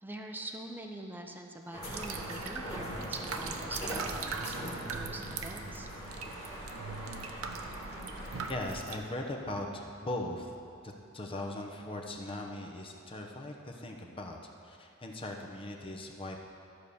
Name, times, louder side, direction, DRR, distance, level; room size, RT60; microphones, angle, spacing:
voice 1, 0.0-5.9, right 1 dB, 10° right, 2 dB, 0.6 m, -44 dB
sound 1, 1.7-8.5, equal, 45° left, 3.0 m, -41 dB
sound 2, 1.8-9.0, right 5 dB, 80° right, 0.7 m, -41 dB
voice 2, 8.5-10.5 10.8-14.4 14.6-16.4, left 1 dB, 25° left, 1 dB, 1.0 m, -39 dB
13.5 x 4.9 x 7.0 m, 2.6 s
head